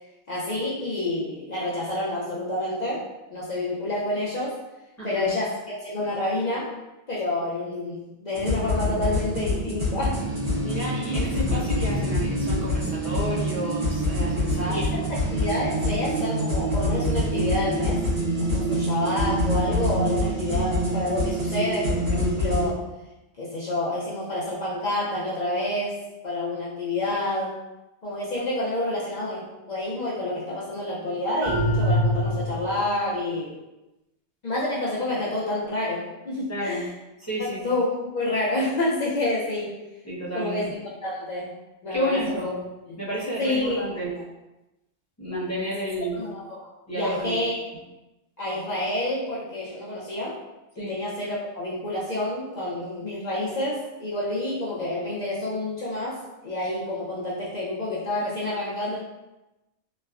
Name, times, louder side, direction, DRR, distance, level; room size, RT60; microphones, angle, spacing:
voice 1, 0.3-3.1 3.3-4.6 5.0-6.7 7.1-10.2 14.7-18.0 18.4-22.8 23.4-26.0 26.2-27.6 28.0-33.6 34.4-36.9 37.4-39.7 40.3-40.7 41.0-41.5 41.8-42.5 42.9-43.0 43.4-44.0 46.2-47.6 48.4-50.4 50.8-56.2 56.4-59.0, left 1 dB, 50° left, -7 dB, 0.5 m, -28 dB
voice 2, 5.0-5.3 10.6-15.0 18.8-18.9 36.5-36.9 37.2-37.7 40.0-40.7 41.9-42.6 43.0-44.1 45.2-46.3 46.9-47.4 50.8-51.0, equal, 15° left, -8 dB, 0.8 m, -31 dB
sound 1, 8.3-22.7, equal, 80° right, 1.3 m, -25 dB
sound 2, 31.4-32.9, equal, 55° right, 1.1 m, -24 dB
3.1 x 2.1 x 2.3 m, 1.0 s
omnidirectional pair, 1.2 m